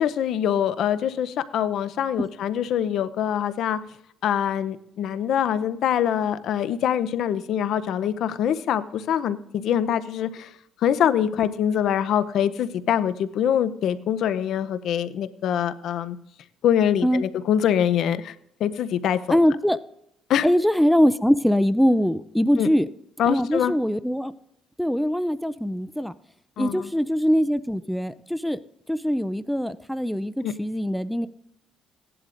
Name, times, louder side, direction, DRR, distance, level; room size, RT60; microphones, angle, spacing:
voice 1, 0.0-3.8 4.2-10.5 10.8-16.2 16.6-18.3 18.6-19.4 20.3-20.5 22.6-22.7 23.2-23.7 26.6-26.9 30.4-30.5, left 9 dB, 65° left, 13 dB, 0.6 m, -24 dB
voice 2, 19.3-19.8 20.4-22.9 23.3-24.3 24.8-26.1 26.6-28.6 28.9-31.3, equal, ahead, 13 dB, 0.4 m, -22 dB
17.0 x 11.0 x 2.5 m, 0.76 s
cardioid pair, 105°, 0 cm